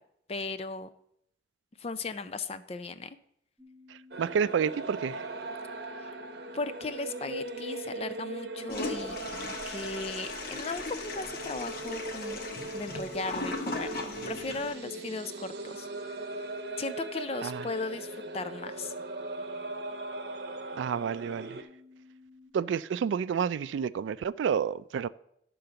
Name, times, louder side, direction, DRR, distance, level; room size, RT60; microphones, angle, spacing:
voice 1, 0.3-0.9 1.8-3.2 6.0-6.1 6.5-12.4 12.7-15.9 16.8-18.9, left 3 dB, 30° left, 0.4 m, -37 dB
sound 1, 3.6-22.5, left 3 dB, ahead, 1.1 m, -55 dB
sound 2, 4.1-21.6, right 2 dB, 55° right, 0.9 m, -39 dB
voice 2, 4.2-5.3 17.4-17.6 20.8-21.6 22.5-25.1, right 7 dB, 80° right, 0.3 m, -29 dB
Toilet flush, 8.7-14.7, left 2 dB, 50° left, 1.2 m, -38 dB
11.5 x 3.8 x 6.8 m
head